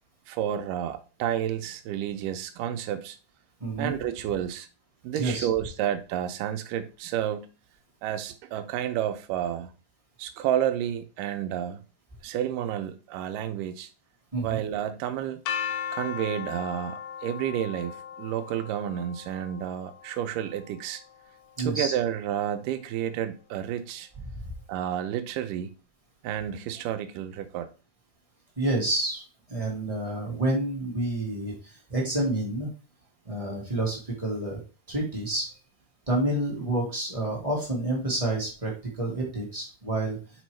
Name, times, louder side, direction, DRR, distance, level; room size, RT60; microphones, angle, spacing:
voice 1, 0.3-3.2 3.8-4.7 5.0-7.5 8.0-9.7 10.2-11.8 12.2-13.9 14.4-15.4 15.9-21.0 21.7-24.1 24.7-25.7 26.2-27.7, right 10 dB, 85° right, 2.3 m, -30 dB
voice 2, 3.6-3.9 5.1-5.4 14.3-14.6 21.6-21.9 24.2-24.5 28.6-29.2 29.5-32.7 33.2-34.6 34.9-35.5 36.1-40.2, right 2 dB, 35° right, 0.5 m, -29 dB
sound 1, 15.5-21.4, left 8 dB, 75° left, 2.2 m, -37 dB
6.8 x 4.4 x 3.2 m
omnidirectional pair, 3.7 m